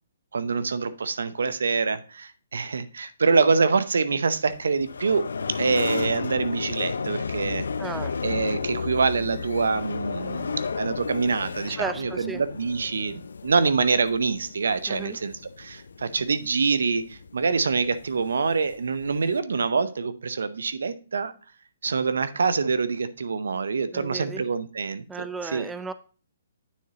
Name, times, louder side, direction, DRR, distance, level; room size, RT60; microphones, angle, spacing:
voice 1, 0.3-7.7 8.2-21.3 21.8-25.7, right 4 dB, 75° right, 13 dB, 0.7 m, -25 dB
sound 1, 4.5-19.4, left 5 dB, 75° left, 0.5 m, -33 dB
voice 2, 7.8-8.2 11.7-12.4 14.9-15.2 23.9-24.4 25.1-25.9, right 4 dB, 10° right, 11 dB, 0.4 m, -34 dB
9.4 x 6.4 x 2.9 m, 0.38 s
hypercardioid pair, 135°, 0 cm